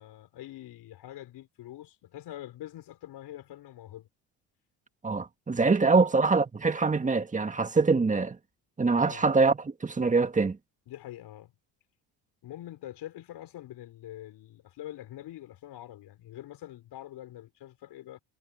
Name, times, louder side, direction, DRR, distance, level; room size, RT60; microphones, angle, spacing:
voice 1, 0.0-4.1 5.6-6.1 9.0-9.3 10.9-11.5 12.4-18.2, left 13 dB, 65° left, 5.0 m, -45 dB
voice 2, 5.0-8.4 8.8-10.6, right 4 dB, 15° right, 1.7 m, -24 dB
cardioid pair, 105°, 42 cm